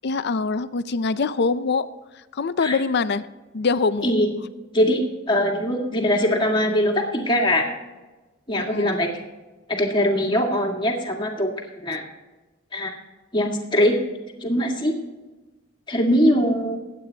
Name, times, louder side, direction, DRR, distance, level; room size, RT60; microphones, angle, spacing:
voice 1, 0.0-1.9 2.3-3.3 3.5-4.1 8.6-9.0, left 4 dB, 50° left, 13 dB, 0.5 m, -24 dB
voice 2, 4.7-7.6 8.5-9.2 9.7-11.5 11.8-12.0 12.7-13.0 13.3-13.9 14.4-14.9 15.9-16.8, equal, 25° left, 0 dB, 1.9 m, -21 dB
21.5 x 9.1 x 2.8 m, 1.2 s
head